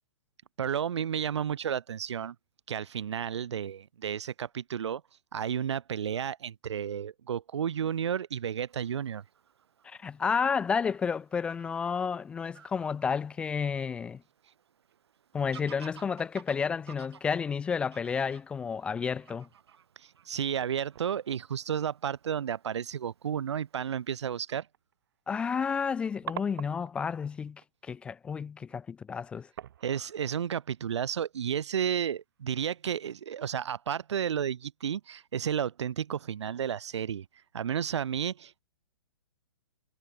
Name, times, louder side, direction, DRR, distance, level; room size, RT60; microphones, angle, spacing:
voice 1, 0.6-2.4 2.7-5.0 5.3-9.2 20.3-24.7 29.8-37.3 37.5-38.6, right 8 dB, 85° right, 0.6 m, -32 dB
Fowl / Bird vocalization bird call bird song, 8.7-24.4, right 8 dB, 70° right, 6.3 m, -57 dB
voice 2, 9.8-14.2 15.3-19.5 25.3-29.5, left 6 dB, 5° left, 0.6 m, -31 dB
sound 1, 14.8-15.1 17.4-18.5 18.9-19.0 19.6-19.7 20.5-21.2 21.6-21.9 22.9-23.1 23.5-23.6 24.2-24.3 24.5-27.1 27.5-27.8 29.0-29.2 29.6-31.7 32.2-32.5 33.0-33.1, right 11 dB, 50° right, 2.0 m, -46 dB
hypercardioid pair, 160°, 14 cm